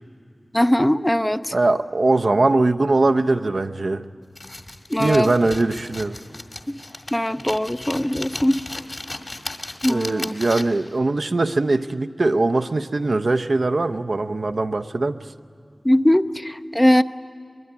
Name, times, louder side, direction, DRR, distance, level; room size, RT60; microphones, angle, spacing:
voice 1, 0.5-1.5 4.9-5.3 6.7-6.8 7.1-8.6 9.8-10.3 15.8-17.0, left 1 dB, 15° left, 11 dB, 0.6 m, -20 dB
voice 2, 1.5-4.0 5.0-6.2 9.9-15.2, right 2 dB, 70° right, 7 dB, 0.7 m, -21 dB
sound 1, 4.4-10.9, left 2 dB, 50° left, 1.8 m, -35 dB
23.0 x 21.5 x 9.7 m, 2.4 s
wide cardioid pair, 70°, 0 cm